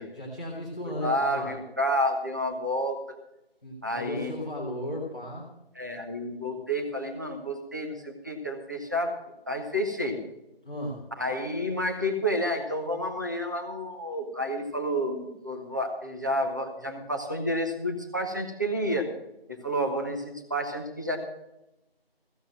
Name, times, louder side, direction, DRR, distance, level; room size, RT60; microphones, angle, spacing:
voice 1, 0.1-1.5 3.6-5.5 10.6-11.0, left 1 dB, 5° left, -9 dB, 1.4 m, -35 dB
voice 2, 1.0-3.0 3.8-4.3 5.8-9.1 9.5-10.2 11.2-19.1 19.5-21.2, equal, 20° right, 3 dB, 1.0 m, -30 dB
15.0 x 8.4 x 6.4 m, 0.88 s
figure-of-eight pair, 170°, 31 cm